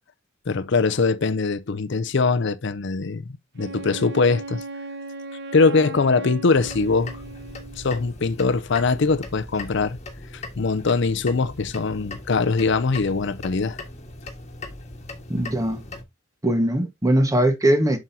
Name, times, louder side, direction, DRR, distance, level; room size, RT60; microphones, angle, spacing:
voice 1, 0.5-3.2 3.6-4.6 5.5-7.2 7.8-10.0 10.3-13.8, left 4 dB, 60° left, 0.6 m, -22 dB
Wind instrument woodwind instrument, 3.6-7.9, right 2 dB, 60° right, 0.9 m, -37 dB
sound 1, 6.5-16.0, left 2 dB, 35° left, 1.6 m, -39 dB
voice 2, 15.3-15.8 16.4-18.0, right 1 dB, 15° right, 1.4 m, -20 dB
7.5 x 6.1 x 2.7 m
head